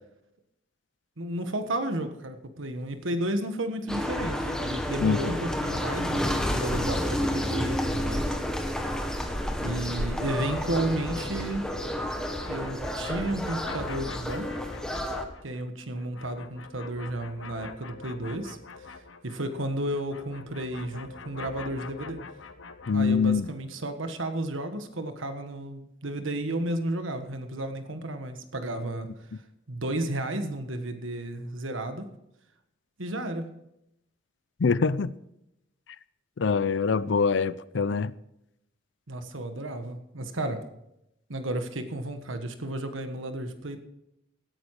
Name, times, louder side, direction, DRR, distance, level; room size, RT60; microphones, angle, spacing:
voice 1, 1.2-8.4 9.6-11.7 12.5-14.5 15.4-18.6 19.2-22.2 22.9-29.1 29.7-32.1 33.0-33.4 39.1-40.6 41.3-43.8, right 1 dB, 85° right, 1.4 m, -32 dB
sound 1, 3.9-15.3, left 1 dB, 5° left, 1.2 m, -30 dB
sound 2, 10.7-19.6 19.9-23.5, left 4 dB, 90° left, 1.0 m, -45 dB
voice 2, 22.9-23.5 34.6-35.1 36.4-38.1, left 5 dB, 70° left, 0.5 m, -24 dB
17.0 x 9.6 x 4.8 m
head